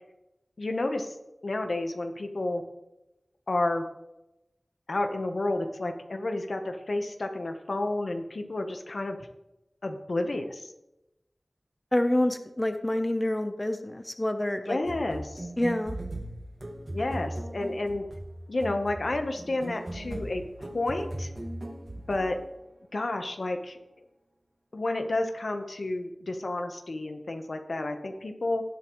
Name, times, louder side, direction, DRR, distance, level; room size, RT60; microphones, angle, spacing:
voice 1, 0.6-1.1 1.4-2.6 3.5-3.9 4.9-9.2 9.8-10.7 14.7-15.5 16.9-18.0 18.5-21.3 22.1-22.4 22.9-23.8 24.7-28.6, left 2 dB, 80° left, 6 dB, 1.1 m, -30 dB
voice 2, 11.9-14.8 15.6-16.0, left 1 dB, 25° left, 8 dB, 0.8 m, -27 dB
sound 1, 14.8-22.5, right 1 dB, 50° right, 1.9 m, -38 dB
18.0 x 7.5 x 3.2 m, 0.92 s
wide cardioid pair, 55°, 0 cm